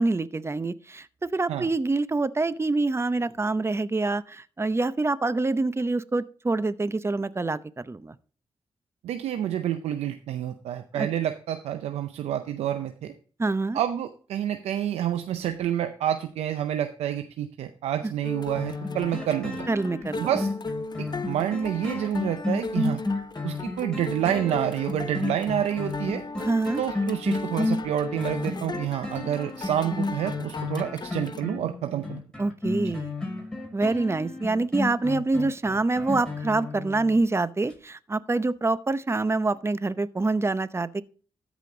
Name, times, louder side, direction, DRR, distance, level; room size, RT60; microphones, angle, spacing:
voice 1, 0.0-8.2 10.9-11.1 13.4-13.8 19.7-20.3 26.4-26.8 32.4-33.1 33.7-41.0, right 3 dB, 25° right, 0.7 m, -26 dB
voice 2, 9.0-13.1 13.7-19.7 20.2-20.5 21.3-23.0 23.4-26.2 26.8-32.2, right 11 dB, 85° right, 0.6 m, -28 dB
sound 1, 18.2-31.4, left 3 dB, 40° left, 0.7 m, -38 dB
sound 2, 18.5-37.2 37.7-37.8, left 3 dB, 5° left, 5.7 m, -32 dB
13.5 x 5.1 x 3.8 m
supercardioid pair, 50°, 11 cm